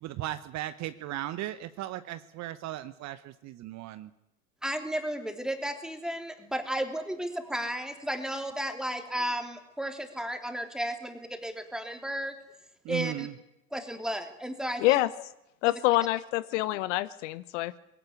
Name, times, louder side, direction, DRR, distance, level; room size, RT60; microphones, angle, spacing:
voice 1, 0.0-4.1 12.8-13.3, right 14 dB, 40° right, 14 dB, 1.0 m, -36 dB
voice 2, 4.6-12.3 12.9-13.3 13.7-15.0, equal, ahead, 5 dB, 3.3 m, -33 dB
voice 3, 15.6-17.8, left 17 dB, 55° left, 16 dB, 0.9 m, -26 dB
21.5 x 16.5 x 9.7 m, 0.89 s
figure-of-eight pair, 80°, 44 cm